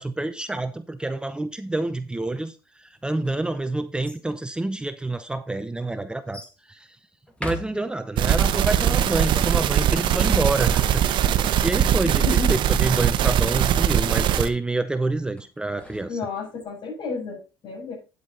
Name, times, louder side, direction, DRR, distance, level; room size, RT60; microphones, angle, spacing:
voice 1, 0.0-7.0 7.4-16.2, right 2 dB, 10° right, 0.7 m, -28 dB
sound 1, 3.0-4.3 5.1-5.2 6.3-6.6 7.3-8.3 15.4-16.6, equal, 15° left, 2.2 m, -40 dB
sound 2, 8.2-14.5, right 10 dB, 60° right, 1.0 m, -21 dB
voice 2, 12.0-12.6 16.1-17.9, left 5 dB, 55° left, 6.5 m, -31 dB
9.5 x 8.2 x 4.0 m
cardioid pair, 110°, 9 cm